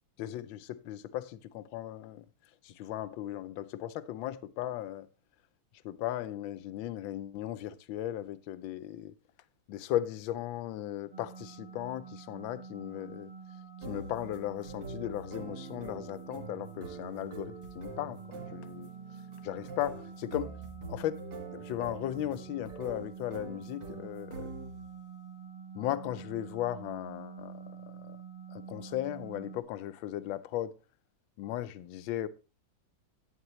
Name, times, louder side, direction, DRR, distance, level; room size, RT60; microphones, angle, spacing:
voice 1, 0.2-2.3 2.6-5.1 5.8-9.1 9.7-13.3 13.8-18.2 18.5-18.9 19.4-20.5 20.9-21.2 21.5-24.5 25.7-28.2 28.5-30.7 31.4-32.3, left 13 dB, 75° left, 1.4 m, -37 dB
sound 1, 11.1-29.6, right 6 dB, 35° right, 1.0 m, -47 dB
sound 2, 13.8-25.0, right 3 dB, 60° right, 2.1 m, -45 dB
11.5 x 9.3 x 3.1 m
omnidirectional pair, 2.2 m